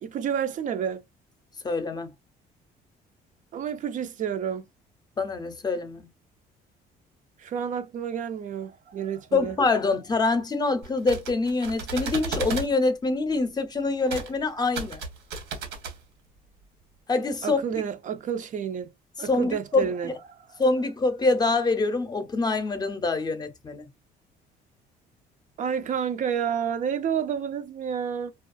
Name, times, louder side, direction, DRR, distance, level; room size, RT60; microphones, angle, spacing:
voice 1, 0.0-1.0 3.5-4.7 7.4-9.6 17.4-18.9 19.2-20.6 25.6-28.3, right 8 dB, 50° right, 0.4 m, -30 dB
voice 2, 1.6-2.1 5.2-6.1 9.3-15.0 17.1-17.6 19.3-20.1 20.6-23.9, left 3 dB, 25° left, 0.6 m, -25 dB
sound 1, 10.8-12.7 14.1-14.3 14.6-16.0, right 4 dB, 90° right, 1.2 m, -34 dB
2.3 x 2.3 x 2.3 m
cardioid pair, 110°, 17 cm